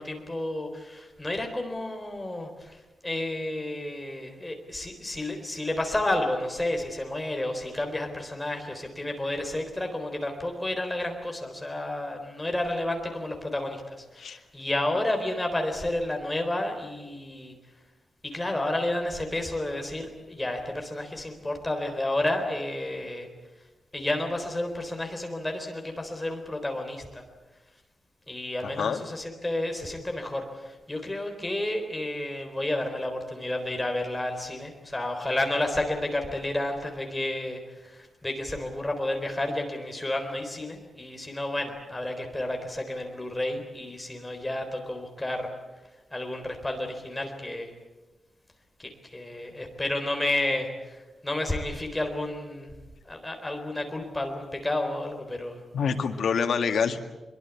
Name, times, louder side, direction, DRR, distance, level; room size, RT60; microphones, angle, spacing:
voice 1, 0.0-17.6 18.2-23.3 23.9-27.2 28.3-45.5 46.1-47.7 48.8-52.7 53.0-55.6, left 1 dB, 10° left, 4 dB, 3.9 m, -31 dB
voice 2, 28.6-29.0 55.7-57.0, left 6 dB, 85° left, 5 dB, 2.0 m, -26 dB
23.0 x 23.0 x 8.3 m, 1.1 s
wide cardioid pair, 170°, 0 cm